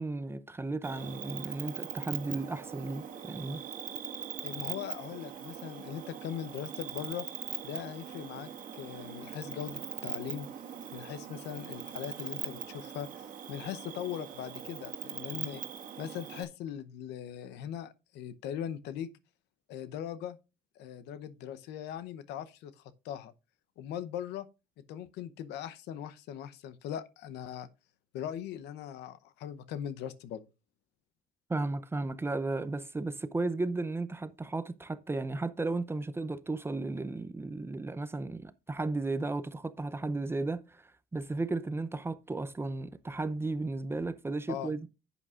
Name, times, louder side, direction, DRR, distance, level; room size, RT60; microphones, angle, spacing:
voice 1, 0.0-3.6 31.5-44.9, right 2 dB, 15° right, 0.6 m, -34 dB
Cricket, 0.8-16.4, right 9 dB, 50° right, 1.8 m, -41 dB
voice 2, 4.4-7.3 7.6-10.5 10.9-15.6 16.0-19.1 19.7-20.4 20.8-23.3 23.8-24.5 24.9-27.7 28.1-30.5 44.5-44.7, left 9 dB, 85° left, 0.8 m, -40 dB
11.0 x 8.2 x 2.5 m
cardioid pair, 110°, 17 cm